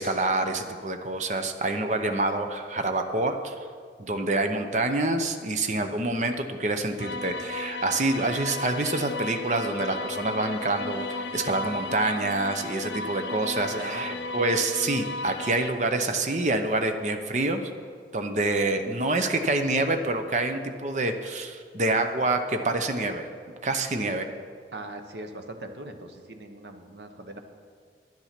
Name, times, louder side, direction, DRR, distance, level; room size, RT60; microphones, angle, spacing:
voice 1, 0.0-3.5 4.0-17.7 18.1-23.3 23.6-24.3, right 2 dB, 40° right, 6 dB, 0.7 m, -27 dB
sound 1, 7.0-15.7, left 2 dB, 85° left, 0.6 m, -34 dB
voice 2, 13.7-14.3 24.7-27.4, right 2 dB, 80° right, 6 dB, 1.1 m, -40 dB
10.5 x 10.0 x 5.9 m, 2.1 s
head